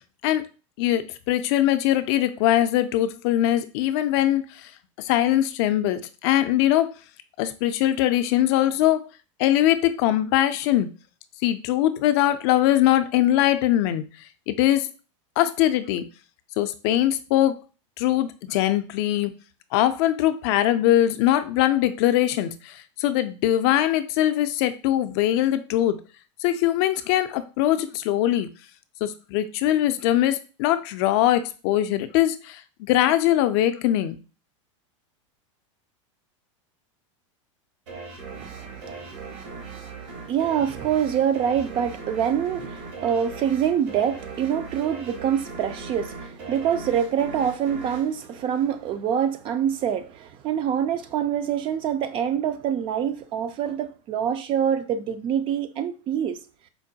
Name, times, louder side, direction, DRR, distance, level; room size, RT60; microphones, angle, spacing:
voice 1, 0.8-4.7 5.0-6.9 7.4-9.0 9.4-10.9 11.4-14.0 14.5-14.9 15.4-16.0 16.6-17.6 18.0-19.3 19.7-26.0 26.4-28.5 29.0-34.2, left 13 dB, 55° left, 0.4 m, -22 dB
sound 1, 37.9-49.1, right 4 dB, 65° right, 1.1 m, -39 dB
voice 2, 38.2-56.4, right 9 dB, 30° right, 0.3 m, -26 dB
4.5 x 2.1 x 2.7 m
supercardioid pair, 125°, 17 cm